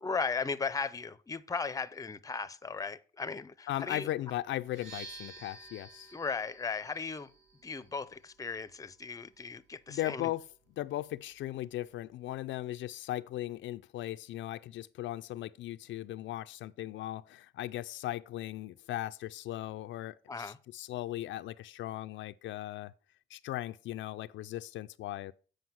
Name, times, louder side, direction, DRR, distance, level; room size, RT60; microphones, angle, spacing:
voice 1, 0.0-4.1 6.1-7.3 7.6-10.3 20.3-20.6, left 4 dB, 15° left, 0.6 m, -36 dB
voice 2, 3.7-6.1 9.9-10.5 10.8-22.9 23.3-25.3, left 14 dB, 75° left, 0.4 m, -38 dB
sound 1, 4.7-12.4, right 3 dB, 80° right, 3.9 m, -54 dB
7.8 x 5.1 x 5.7 m
cardioid pair, 90°, 20 cm